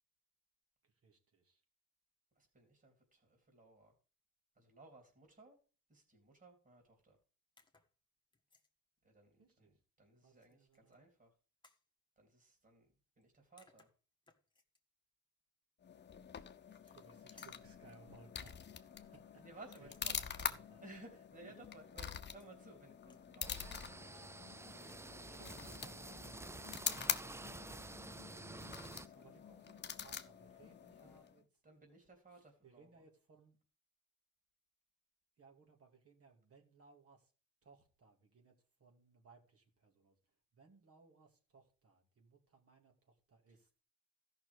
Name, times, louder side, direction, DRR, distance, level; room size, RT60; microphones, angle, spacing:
voice 1, 0.8-1.6 9.4-9.8 10.2-11.0 16.6-19.4 19.8-20.8 29.1-31.4 31.8-32.0 32.3-33.6 35.4-37.3 37.6-43.7, right 4 dB, 50° right, 2.6 m, -65 dB
voice 2, 2.4-4.0 4.6-5.6 5.9-7.2 9.0-11.3 12.2-13.9 19.4-20.5 20.8-24.4 25.0-26.4 28.8-29.6 31.0-33.0 43.5-43.8, right 2 dB, 30° right, 3.5 m, -60 dB
sound 1, 7.6-7.9 8.3-8.7 10.4-11.0 11.6-11.9 13.2-13.3 13.6-14.8 16.6-17.1 17.4-17.7 19.7-20.6 22.2-22.7 23.0-23.3, left 3 dB, 15° left, 1.6 m, -67 dB
sound 2, 15.8-31.4, left 7 dB, 35° left, 0.9 m, -46 dB
sound 3, 23.4-29.1, right 2 dB, 10° right, 0.4 m, -50 dB
13.5 x 6.0 x 5.0 m
cardioid pair, 90°, 30 cm